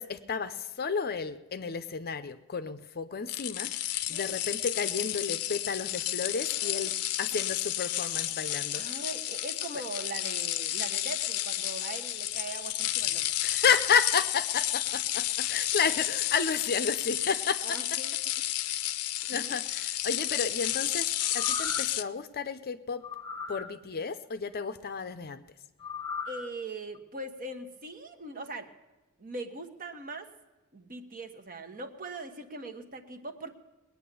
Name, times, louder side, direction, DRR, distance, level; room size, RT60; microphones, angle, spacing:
voice 1, 0.0-3.7 4.1-6.9 7.2-8.8 13.4-18.0 18.6-18.9 19.3-21.1 21.3-23.0 23.5-25.4, left 6 dB, 45° left, 11 dB, 0.6 m, -31 dB
sound 1, 3.3-22.0, left 13 dB, 90° left, 0.6 m, -31 dB
voice 2, 6.6-7.0 8.7-13.2 17.6-18.1 19.3-19.6 26.3-28.7 29.2-30.3 30.7-33.5, right 2 dB, 40° right, 6 dB, 1.2 m, -41 dB
sound 2, 21.2-22.0 23.0-23.7 25.8-26.5 26.9-27.0, left 4 dB, 20° left, 1.0 m, -37 dB
20.0 x 9.3 x 6.8 m, 1.1 s
head